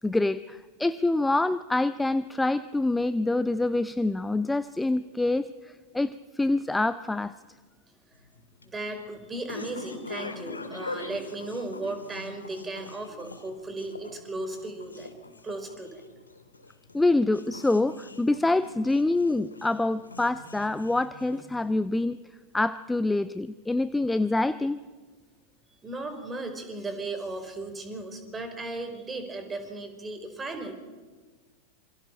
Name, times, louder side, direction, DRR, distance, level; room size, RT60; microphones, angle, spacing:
voice 1, 0.0-7.3 16.9-22.2 22.5-24.8, left 2 dB, 5° left, 15 dB, 0.5 m, -26 dB
sound 1, 8.1-21.7, left 3 dB, 80° left, 2.3 m, -43 dB
voice 2, 8.6-16.0 25.8-30.7, right 2 dB, 15° right, 6 dB, 4.4 m, -36 dB
27.0 x 24.5 x 4.5 m, 1.4 s
figure-of-eight pair, 90°, 0 cm